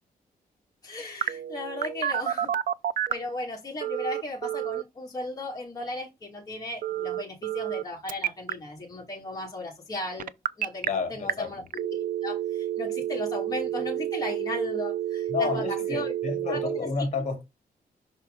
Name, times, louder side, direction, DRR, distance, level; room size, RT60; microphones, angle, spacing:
voice 1, 0.8-2.5 3.1-10.3 10.6-16.1 16.4-16.9, left 2 dB, 25° left, 2.3 m, -36 dB
Telephone, 1.2-3.3 3.8-4.8 6.8-7.8 8.1-8.5 10.2-10.9 11.3-11.4 11.7-16.8, right 11 dB, 60° right, 0.5 m, -29 dB
voice 2, 10.8-11.7 15.3-17.4, left 4 dB, 45° left, 2.6 m, -30 dB
5.9 x 4.4 x 3.8 m
wide cardioid pair, 135°, 16 cm